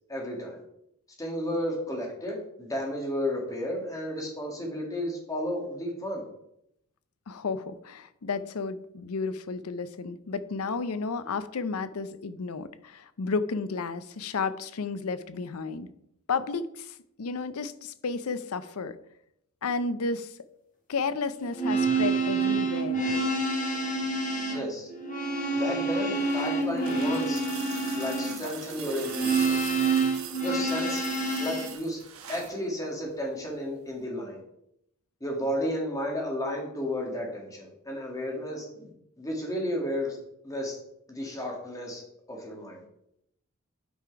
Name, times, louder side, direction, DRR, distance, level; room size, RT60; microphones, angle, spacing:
voice 1, 0.1-0.6 1.2-6.2 24.5-24.9 25.5-27.5 27.9-29.7 30.4-31.0 31.4-32.0 32.3-34.4 35.2-38.9 39.2-40.2 40.4-40.8 41.1-42.8, equal, 15° left, -1 dB, 2.0 m, -33 dB
voice 2, 7.3-15.9 16.3-19.0 19.6-20.4 20.9-23.0, left 4 dB, 85° left, 13 dB, 0.6 m, -32 dB
sound 1, 21.5-31.7, right 3 dB, 35° left, 1.7 m, -28 dB
sound 2, 25.8-32.6 33.9-34.0, right 8 dB, 75° right, 1.3 m, -42 dB
9.0 x 5.1 x 4.7 m, 0.78 s
head